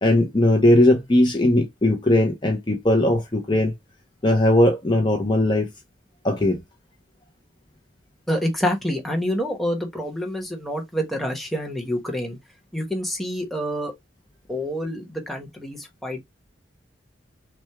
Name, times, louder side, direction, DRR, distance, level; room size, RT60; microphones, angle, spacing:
voice 1, 0.0-3.7 4.2-5.7 6.2-6.6, left 1 dB, 25° left, 0.7 m, -19 dB
voice 2, 8.3-12.4 12.7-13.9 14.5-16.2, equal, ahead, 1.1 m, -27 dB
6.1 x 2.2 x 3.5 m
head